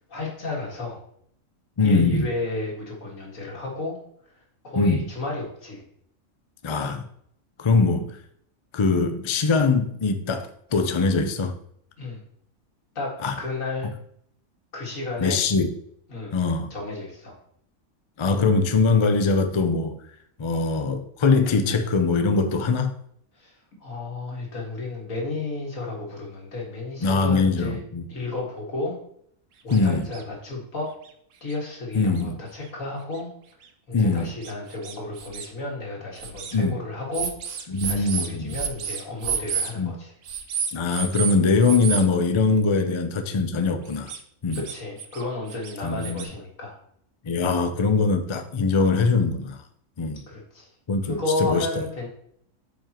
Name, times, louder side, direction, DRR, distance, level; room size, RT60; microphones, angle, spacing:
voice 1, 0.1-1.0 1.8-4.0 4.6-5.8 12.0-12.2 13.0-13.9 14.7-15.4 16.1-16.3 16.7-17.4 23.4-23.5 23.8-27.8 28.1-29.0 29.6-30.9 31.4-33.3 33.9-37.3 37.6-40.1 44.6-46.7 50.3-50.7 51.0-52.1, left 2 dB, 80° left, 2.4 m, -32 dB
voice 2, 1.8-2.3 4.7-5.0 6.6-7.0 7.6-8.2 8.7-11.5 13.2-13.3 15.2-15.7 16.3-16.7 18.2-19.9 20.4-22.9 27.0-28.1 29.7-30.1 31.9-32.4 33.9-34.3 36.5-36.7 37.7-38.5 39.8-40.0 40.7-44.1 44.4-44.6 45.8-46.2 47.2-49.6 50.0-50.2 50.9-51.7, left 4 dB, 40° left, 0.4 m, -22 dB
sound 1, 29.7-29.8 30.1-30.2 31.0-31.1 31.5-31.6 32.2-32.3 33.1-33.2 33.6-33.7 34.4-35.5 36.2-36.6 37.1-39.7 40.3-41.3 41.6-42.0 43.9-44.2 44.5-45.2 45.5-46.2, right 7 dB, 70° right, 1.1 m, -30 dB
8.8 x 5.3 x 3.0 m
omnidirectional pair, 1.4 m